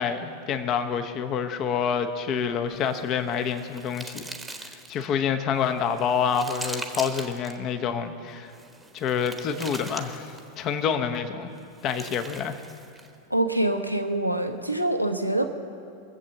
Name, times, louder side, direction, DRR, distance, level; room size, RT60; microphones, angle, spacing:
voice 1, 0.0-4.3 4.6-8.5 8.9-11.5 11.8-12.6, left 7 dB, 35° left, 8 dB, 1.0 m, -27 dB
sound 1, 2.8-5.1 5.6-7.6 8.5-10.6 11.6-13.1, right 2 dB, 5° right, 1.1 m, -41 dB
voice 2, 13.3-15.4, right 1 dB, 90° right, 5 dB, 1.0 m, -25 dB
22.0 x 7.6 x 7.3 m, 2.6 s
figure-of-eight pair, 90°, 0 cm